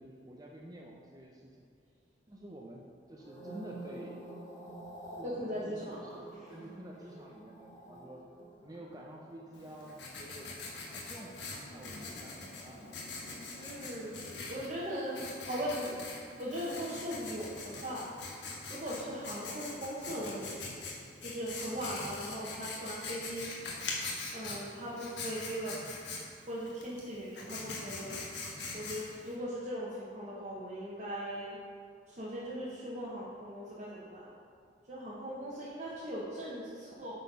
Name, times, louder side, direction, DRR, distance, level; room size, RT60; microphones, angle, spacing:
voice 1, 0.0-1.7 2.3-4.2 5.2-8.2 8.6-10.6 10.9-13.0, right 1 dB, 20° right, -1 dB, 0.6 m, -50 dB
sound 1, 3.1-11.5 11.8-12.1, right 1 dB, 20° left, 1.5 m, -50 dB
voice 2, 5.2-6.5 13.5-18.1 18.7-20.6 21.2-23.5 24.3-25.8 26.5-28.2 28.7-31.6 32.1-34.3 34.9-37.1, equal, 40° right, -7 dB, 1.1 m, -39 dB
Writing, 9.5-29.3, left 3 dB, 75° left, 1.3 m, -43 dB
8.1 x 4.5 x 5.5 m, 2.4 s
head